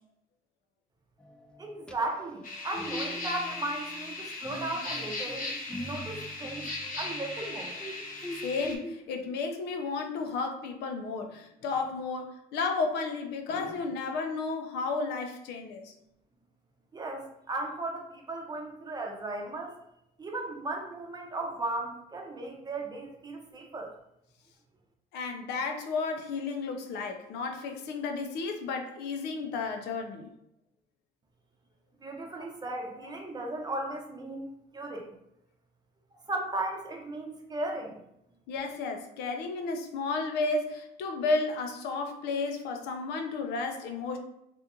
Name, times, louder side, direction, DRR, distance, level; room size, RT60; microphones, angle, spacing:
sound 1, 1.2-9.6, equal, 5° left, 0.3 m, -44 dB
voice 1, 1.6-5.5 5.8-6.7 7.0-7.8 16.9-19.7 20.2-23.9 32.0-35.1 36.1-38.0, right 2 dB, 25° right, 1 dB, 0.7 m, -36 dB
sound 2, 2.4-8.8, left 2 dB, 50° left, 0.8 m, -38 dB
voice 2, 8.4-15.9 25.1-30.3 38.5-44.2, left 4 dB, 80° left, 5 dB, 0.5 m, -32 dB
2.9 x 2.5 x 3.6 m, 0.81 s
cardioid pair, 110°, 17 cm